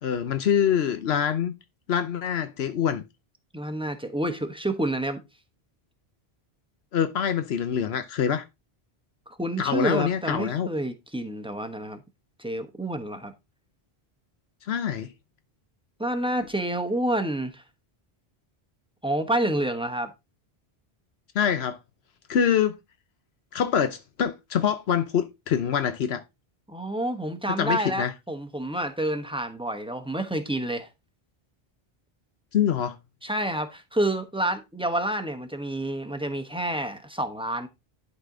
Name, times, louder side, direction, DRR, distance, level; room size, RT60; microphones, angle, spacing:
voice 1, 0.0-1.5 1.9-3.0 6.9-8.4 9.6-10.7 14.6-15.1 21.3-21.8 22.3-22.7 23.5-26.2 27.6-28.1 32.5-33.0, left 8 dB, 80° left, 1.0 m, -25 dB
voice 2, 3.5-5.2 9.3-12.0 12.4-13.3 16.0-17.6 19.0-20.1 26.7-30.9 33.2-37.7, right 1 dB, 5° right, 0.9 m, -28 dB
11.5 x 4.2 x 3.8 m
omnidirectional pair, 1.0 m